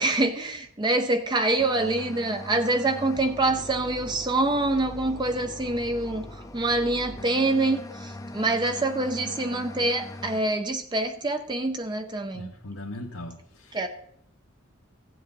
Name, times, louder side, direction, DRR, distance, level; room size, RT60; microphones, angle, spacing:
voice 1, 0.0-12.5 13.7-13.9, right 2 dB, 20° right, 7 dB, 0.6 m, -26 dB
sound 1, 1.6-10.4, left 1 dB, 15° left, 0.6 m, -40 dB
voice 2, 12.3-13.9, left 1 dB, 80° left, -1 dB, 1.2 m, -39 dB
15.5 x 7.7 x 3.9 m, 0.71 s
head